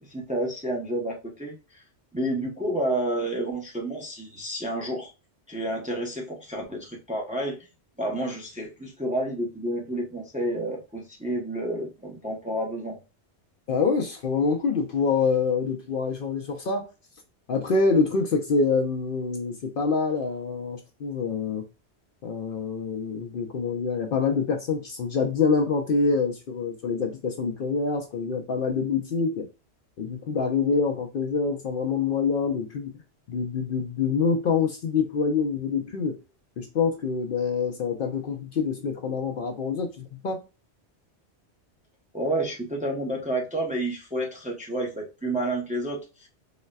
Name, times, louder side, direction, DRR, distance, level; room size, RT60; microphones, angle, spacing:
voice 1, 0.1-1.8 2.1-5.1 5.5-7.7 8.0-13.0 42.1-46.3, right 1 dB, 10° right, 0.6 m, -30 dB
voice 2, 13.7-16.9 17.5-21.6 22.2-29.5 30.0-33.0 33.3-36.2 36.6-40.4, left 5 dB, 60° left, 0.7 m, -26 dB
3.9 x 2.1 x 2.2 m
omnidirectional pair, 1.2 m